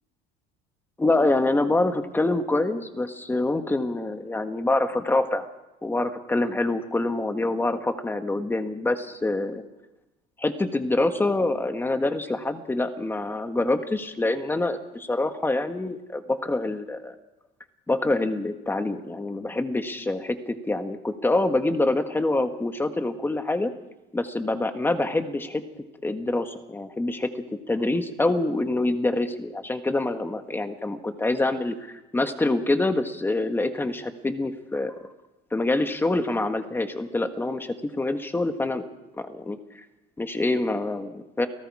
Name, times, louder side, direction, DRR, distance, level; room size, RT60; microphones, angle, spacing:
voice 1, 1.0-5.5 5.8-9.6 10.4-17.2 17.9-23.7 24.1-25.6 26.0-27.3 27.7-35.1 35.5-38.8 39.2-39.9 40.2-41.5, left 2 dB, 10° left, 7 dB, 1.6 m, -26 dB
30.0 x 18.0 x 4.9 m, 1.0 s
cardioid pair, 135°, 21 cm